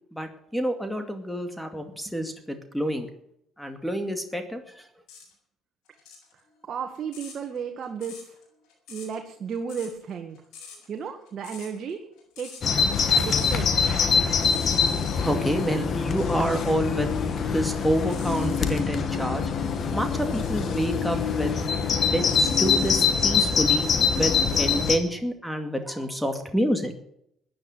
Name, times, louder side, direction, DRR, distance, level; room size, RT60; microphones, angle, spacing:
voice 1, 0.1-3.1 3.6-4.8 15.2-17.1 17.5-19.4 19.9-21.6 22.1-23.9 24.2-26.9, equal, ahead, 6 dB, 2.3 m, -28 dB
sound 1, 5.1-5.3 5.9-13.7 13.9-15.2 16.0-16.8 17.4-18.9 20.2-21.0 21.5-23.0, left 6 dB, 80° left, 7.8 m, -47 dB
voice 2, 6.6-8.3 8.9-10.4 10.9-12.0 12.4-13.7, right 6 dB, 50° right, 4 dB, 1.8 m, -34 dB
Bird vocalization bird call bird song, 12.6-25.0, left 6 dB, 50° left, 2.2 m, -24 dB
15.0 x 10.0 x 7.8 m, 0.74 s
supercardioid pair, 85°, 0 cm